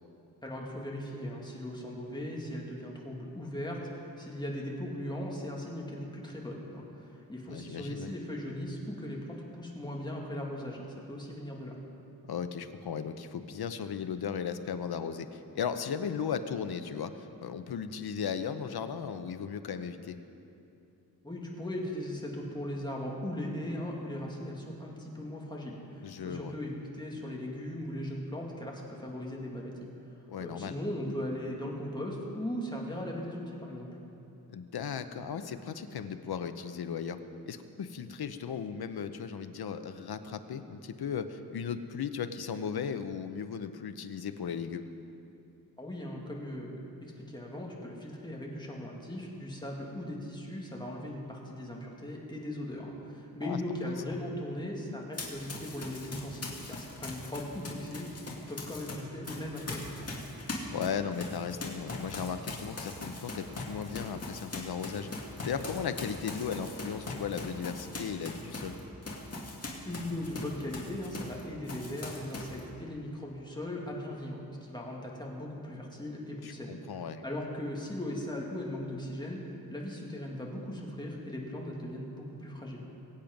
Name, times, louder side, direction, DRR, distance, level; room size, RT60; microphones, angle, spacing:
voice 1, 0.4-11.8 21.2-29.8 30.4-33.9 45.8-60.2 69.8-79.4 79.7-82.8, left 1 dB, 10° left, -2 dB, 2.1 m, -38 dB
voice 2, 7.5-8.1 12.3-20.2 26.0-26.5 30.3-30.8 34.5-37.2 37.5-44.9 53.4-53.9 60.7-65.1 65.4-68.8 76.4-77.2, left 7 dB, 85° left, 9 dB, 0.8 m, -36 dB
Run, 55.1-58.9 59.2-71.4 71.7-72.6, left 2 dB, 40° left, 2.2 m, -41 dB
22.5 x 8.8 x 5.3 m, 2.8 s
wide cardioid pair, 145°, 37 cm